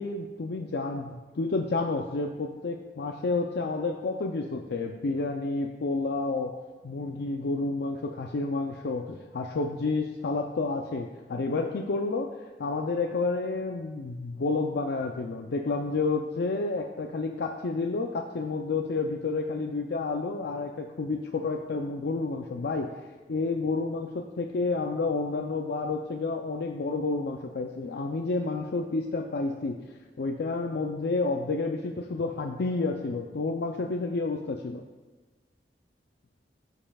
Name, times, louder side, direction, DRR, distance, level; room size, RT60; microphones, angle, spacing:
voice 1, 0.0-6.5 6.8-12.3 12.6-22.9 23.3-34.8, left 3 dB, 65° left, 2 dB, 0.5 m, -30 dB
15.0 x 5.4 x 2.3 m, 1.3 s
head